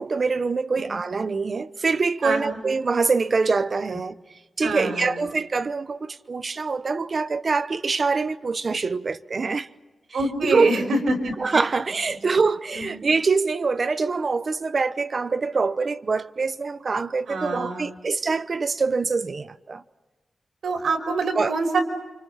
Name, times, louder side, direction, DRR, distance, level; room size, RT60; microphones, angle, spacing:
voice 1, 0.0-4.1 4.6-9.7 10.4-10.7 11.4-19.8 21.4-21.5, right 4 dB, 40° right, 0.9 m, -24 dB
voice 2, 2.2-2.6 4.6-5.2 10.1-11.3 12.1-12.2 12.7-12.9 17.3-18.0 20.6-21.8, right 2 dB, 85° right, 5.5 m, -25 dB
30.0 x 28.5 x 5.8 m
wide cardioid pair, 160°, 0 cm